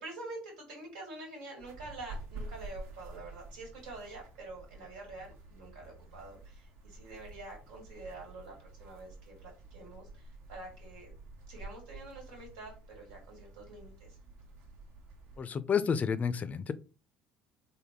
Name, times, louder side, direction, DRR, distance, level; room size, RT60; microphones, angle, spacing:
voice 1, 0.0-11.1 11.5-14.2, right 2 dB, 90° right, 1.7 m, -47 dB
sound 1, 1.6-15.4, right 2 dB, 70° right, 0.9 m, -49 dB
voice 2, 15.4-16.7, left 6 dB, 35° left, 0.4 m, -30 dB
3.5 x 2.2 x 3.6 m
supercardioid pair, 75°, 4 cm